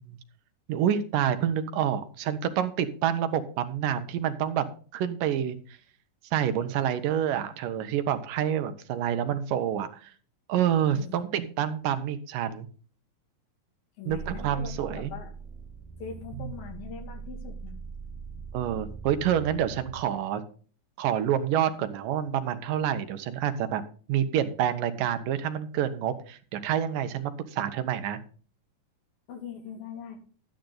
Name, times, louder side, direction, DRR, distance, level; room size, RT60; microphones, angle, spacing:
voice 1, 0.7-4.7 4.9-5.6 6.3-10.1 10.5-12.7 14.1-15.1 16.4-16.5 18.5-20.4 21.0-23.8 24.1-28.2, right 10 dB, 75° right, 9 dB, 2.6 m, -28 dB
voice 2, 10.9-11.2 14.0-15.3 16.0-17.8 29.3-30.2, left 6 dB, 85° left, 3 dB, 4.2 m, -41 dB
sound 1, 14.1-20.0, right 5 dB, 25° right, 2.9 m, -41 dB
12.0 x 10.5 x 3.9 m, 0.41 s
omnidirectional pair, 4.0 m